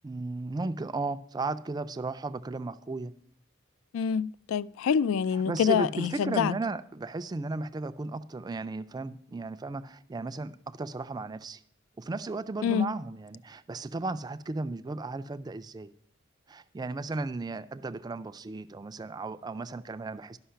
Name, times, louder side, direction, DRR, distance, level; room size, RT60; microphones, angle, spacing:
voice 1, 0.0-3.1 5.5-11.6 12.0-15.9 16.5-20.4, right 3 dB, 20° right, 0.3 m, -35 dB
voice 2, 3.9-6.5 12.6-12.9, left 7 dB, 90° left, 0.3 m, -26 dB
11.5 x 5.6 x 5.7 m
head